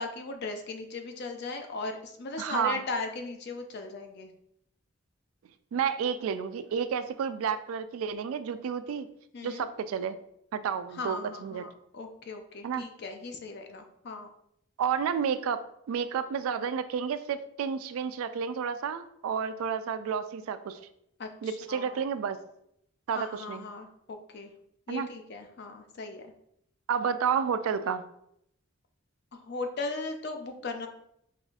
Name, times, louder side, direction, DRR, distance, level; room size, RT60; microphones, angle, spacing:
voice 1, 0.0-4.3 9.3-9.6 10.9-14.3 21.2-22.0 23.1-24.5 24.9-26.3 29.3-30.9, left 3 dB, 55° left, 5 dB, 0.4 m, -38 dB
voice 2, 2.4-2.8 5.7-9.1 9.4-10.2 10.5-11.6 12.6-12.8 14.8-20.9 21.4-22.4 23.1-23.6 24.9-25.1 26.9-28.0, right 7 dB, 90° right, 12 dB, 0.3 m, -31 dB
5.4 x 2.4 x 2.4 m, 0.74 s
head